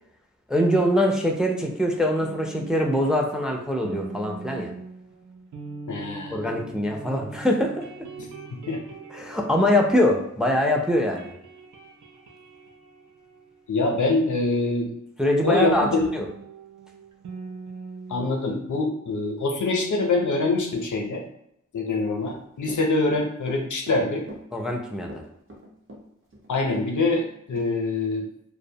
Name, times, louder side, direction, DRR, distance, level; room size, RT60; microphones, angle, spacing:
voice 1, 0.5-4.7 6.3-7.9 9.1-11.3 15.2-15.9 16.1-16.2 24.5-25.2, left 1 dB, ahead, 2 dB, 0.4 m, -23 dB
sound 1, 2.2-10.7 11.0-14.4 15.6-18.3, right 4 dB, 80° right, 0.5 m, -42 dB
voice 2, 5.9-6.5 8.2-8.8 13.7-14.9 15.4-16.1 18.1-21.2 21.7-24.3 26.5-28.3, left 3 dB, 85° left, 2 dB, 0.5 m, -25 dB
Run / Walk footsteps, 22.2-27.3 27.6-27.7, equal, 45° right, 0.7 m, -43 dB
2.5 x 2.1 x 2.7 m, 0.75 s
wide cardioid pair, 65°, 30 cm